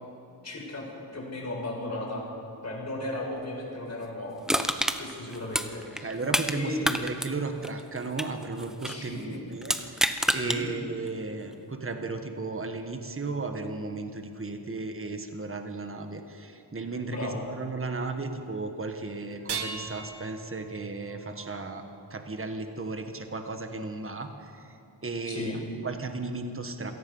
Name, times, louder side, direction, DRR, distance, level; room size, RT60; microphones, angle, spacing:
voice 1, 0.4-0.9 1.1-2.2 2.6-4.4 5.0-6.1 6.5-6.9 8.9-9.4 10.3-10.7 17.1-17.4 25.2-25.6, left 1 dB, 40° left, -1 dB, 5.2 m, -35 dB
Crushing, 4.5-6.6 6.8-9.0 9.6-10.6 11.1-11.2, equal, ahead, 0.9 m, -28 dB
voice 2, 6.0-21.8 22.1-24.8 25.0-26.9, right 3 dB, 30° right, 5 dB, 1.5 m, -35 dB
sound 1, 19.3-22.6 24.1-24.2 25.1-25.2, right 5 dB, 70° right, 1.7 m, -40 dB
27.0 x 18.0 x 5.6 m, 2.7 s
wide cardioid pair, 145°, 42 cm